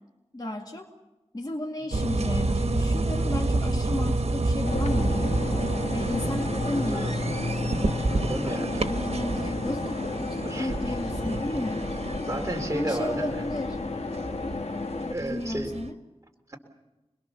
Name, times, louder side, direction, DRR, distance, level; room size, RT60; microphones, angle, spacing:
voice 1, 0.3-0.9 1.3-5.7 5.9-7.2 8.4-11.9 12.7-13.8 15.2-15.9, left 1 dB, 40° left, 1 dB, 2.1 m, -33 dB
sound 1, 1.9-15.9, right 2 dB, 90° right, 1.2 m, -29 dB
sound 2, 4.6-15.1, left 3 dB, 90° left, 1.5 m, -33 dB
voice 2, 6.7-7.1 8.1-8.9 10.4-10.9 11.2-11.4 12.3-13.5 15.1-15.7 16.5-16.6, right 1 dB, 30° right, 3 dB, 3.4 m, -33 dB
28.0 x 21.5 x 7.0 m, 1.0 s
wide cardioid pair, 65°, 11 cm